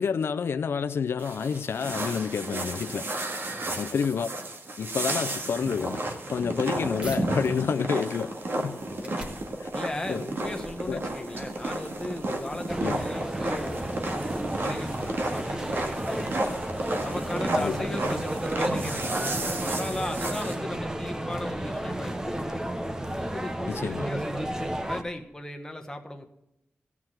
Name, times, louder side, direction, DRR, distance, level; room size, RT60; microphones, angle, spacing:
voice 1, 0.0-3.1 3.7-4.3 4.8-6.0 6.3-8.8 9.6-9.7 10.1-10.2 10.9-11.0 12.8-13.0 17.6-17.9 23.7-24.1, left 6 dB, 85° left, 0.4 m, -29 dB
sound 1, 1.2-20.5, right 2 dB, 65° right, 1.8 m, -32 dB
voice 2, 3.5-3.9 8.6-9.3 9.7-16.3 17.0-22.6 23.2-26.3, left 1 dB, 15° left, 1.3 m, -37 dB
sound 2, 7.0-7.2 7.8-13.0, right 1 dB, 30° right, 2.1 m, -47 dB
sound 3, 12.7-25.0, right 1 dB, 15° right, 0.9 m, -32 dB
15.0 x 5.9 x 7.8 m
wide cardioid pair, 105°, 4 cm